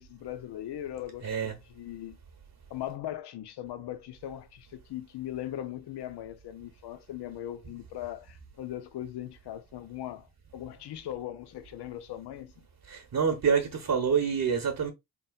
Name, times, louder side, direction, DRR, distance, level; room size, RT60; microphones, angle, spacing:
voice 1, 0.0-2.2 2.7-12.5, left 12 dB, 80° left, 0.7 m, -39 dB
voice 2, 1.2-1.6 12.9-14.9, right 6 dB, 55° right, 1.2 m, -27 dB
4.0 x 3.8 x 2.3 m
supercardioid pair, 50°, 39 cm